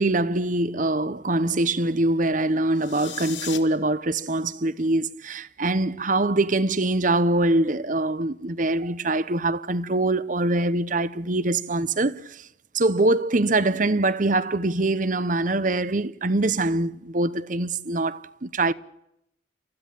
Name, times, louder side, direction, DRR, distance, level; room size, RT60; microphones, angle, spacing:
voice 1, 0.0-12.5 12.7-18.7, right 2 dB, 40° right, 0.9 m, -23 dB
sound 1, 2.7-3.6, left 11 dB, 75° left, 2.5 m, -36 dB
28.5 x 15.5 x 9.1 m
head